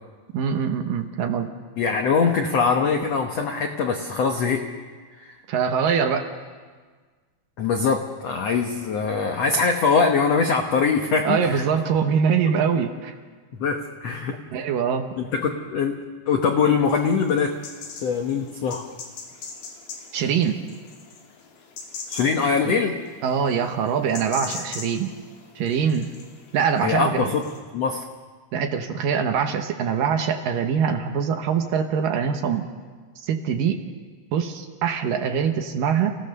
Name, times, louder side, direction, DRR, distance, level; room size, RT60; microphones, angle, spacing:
voice 1, 0.3-1.5 5.5-6.3 11.2-13.2 14.5-15.1 20.1-20.6 23.2-25.1 25.6-26.1 26.5-27.3 28.5-32.7 33.2-33.8 34.3-36.2, right 7 dB, 70° right, 5 dB, 2.5 m, -23 dB
voice 2, 1.8-4.6 5.2-5.3 7.6-11.6 12.4-12.5 13.6-14.4 15.2-16.0 16.3-17.5 18.0-18.9 22.1-23.0 26.8-27.4 27.7-28.0, left 5 dB, 80° left, 4 dB, 1.4 m, -22 dB
sound 1, 16.9-27.6, left 4 dB, 65° left, 4.0 m, -41 dB
29.0 x 16.5 x 6.7 m, 1.5 s
omnidirectional pair, 4.7 m